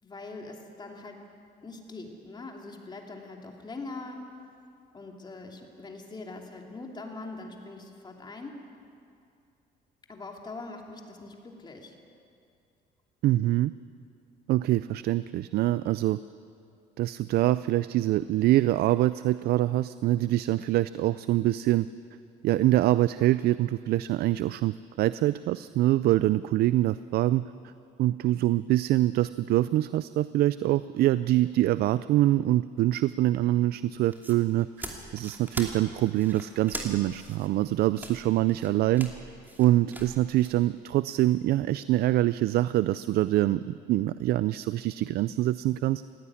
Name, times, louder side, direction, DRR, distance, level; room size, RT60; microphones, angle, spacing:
voice 1, 0.0-1.2 1.6-4.3 4.9-8.6 10.1-12.0, left 3 dB, 25° left, 2 dB, 2.9 m, -42 dB
voice 2, 13.2-13.7 14.5-16.2 17.0-21.9 22.4-27.5 28.0-39.1 39.6-46.1, right 15 dB, 70° right, 16 dB, 0.4 m, -25 dB
sound 1, 34.1-40.6, right 1 dB, 10° right, 2.7 m, -41 dB
17.5 x 16.0 x 9.9 m, 2.5 s
cardioid pair, 110°, 17 cm